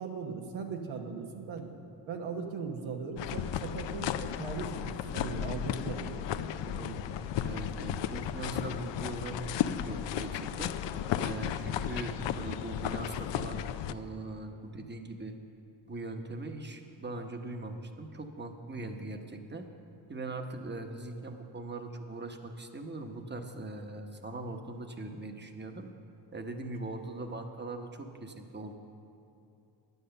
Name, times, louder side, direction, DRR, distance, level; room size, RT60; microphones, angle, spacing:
voice 1, 0.0-1.8 2.1-7.3 18.8-19.0, right 5 dB, 80° right, 2 dB, 1.1 m, -39 dB
Marche Rapide Forêt, 3.2-13.9, left 10 dB, 70° left, 0.6 m, -34 dB
voice 2, 7.4-10.7 11.2-15.4 15.9-19.7 20.1-25.9 26.3-28.7, right 2 dB, 25° right, 5 dB, 1.0 m, -40 dB
9.8 x 8.1 x 6.7 m, 2.8 s
cardioid pair, 65°, 46 cm